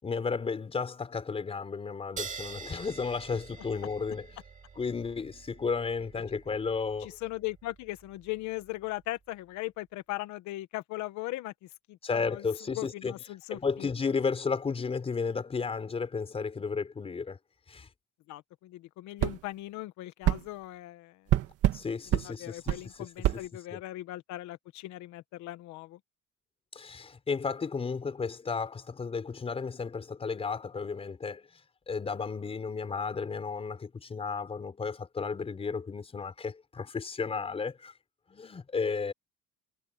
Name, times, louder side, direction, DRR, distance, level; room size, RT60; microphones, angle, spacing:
voice 1, 0.0-4.4 4.7-7.2 12.0-13.1 13.5-17.4 17.7-17.9 21.7-23.8 26.7-31.5 31.9-37.9 38.3-39.1, left 5 dB, 20° left, 5.1 m, -33 dB
sound 1, 2.2-9.1, right 5 dB, 25° right, 2.4 m, -46 dB
voice 2, 7.0-11.5 11.9-12.0 12.3-12.4 12.8-13.9 18.3-21.2 22.2-26.0, left 17 dB, 75° left, 1.2 m, -38 dB
sound 2, 19.2-19.4 20.2-20.4 21.3-21.8 22.1-22.3 22.7-22.8 23.2-23.4, right 13 dB, 55° right, 1.8 m, -25 dB
cardioid pair, 175°, 29 cm